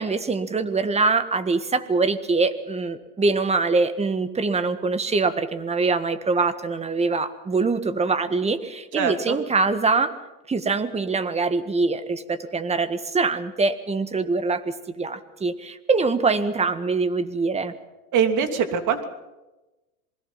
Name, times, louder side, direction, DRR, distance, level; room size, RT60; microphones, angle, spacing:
voice 1, 0.0-10.1 10.5-17.7, right 4 dB, 15° right, 12 dB, 1.7 m, -24 dB
voice 2, 9.0-9.4 18.1-19.1, right 7 dB, 45° right, 7 dB, 3.0 m, -23 dB
27.0 x 21.0 x 5.8 m, 1.1 s
supercardioid pair, 115°, 42 cm